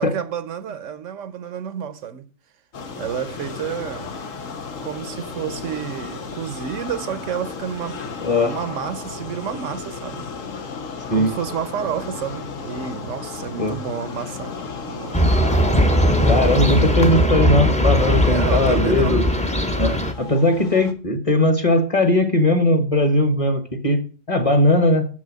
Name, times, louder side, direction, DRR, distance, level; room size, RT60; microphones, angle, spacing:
voice 1, 0.0-2.3 3.0-4.1 4.8-8.0 8.4-10.2 11.1-14.5 14.9-15.3 18.0-19.2, right 8 dB, 75° right, 1.0 m, -30 dB
sound 1, 2.7-20.9, left 4 dB, 75° left, 1.5 m, -34 dB
voice 2, 8.2-8.5 11.1-11.3 13.6-13.8 16.3-19.4 19.8-24.0 24.3-25.1, left 1 dB, 25° left, 1.2 m, -19 dB
sound 2, 15.1-20.1, equal, 5° left, 0.7 m, -19 dB
6.9 x 6.2 x 7.4 m
omnidirectional pair, 1.3 m